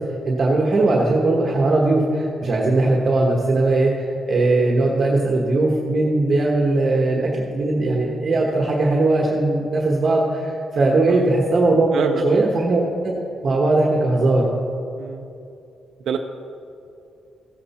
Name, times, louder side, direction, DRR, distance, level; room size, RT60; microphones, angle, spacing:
voice 1, 0.2-11.9 12.2-13.1 13.4-14.5, right 2 dB, 45° right, -1 dB, 1.2 m, -19 dB
voice 2, 11.9-12.5 15.0-15.3 16.1-16.2, right 7 dB, 70° right, 4 dB, 0.5 m, -25 dB
15.5 x 7.6 x 4.3 m, 2.6 s
cardioid pair, 115°, 0 cm